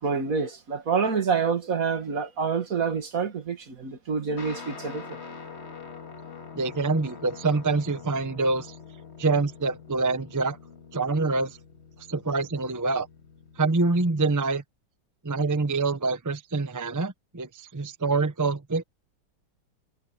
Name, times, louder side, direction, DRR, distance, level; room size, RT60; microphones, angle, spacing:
voice 1, 0.0-5.2, right 5 dB, 50° right, 2.2 m, -27 dB
Guitar, 4.4-14.1, left 5 dB, 40° left, 2.2 m, -45 dB
voice 2, 6.5-8.7 9.2-10.6 10.9-11.6 12.1-13.1 13.6-14.6 15.2-18.8, right 3 dB, 25° right, 0.4 m, -26 dB
omnidirectional pair, 1.9 m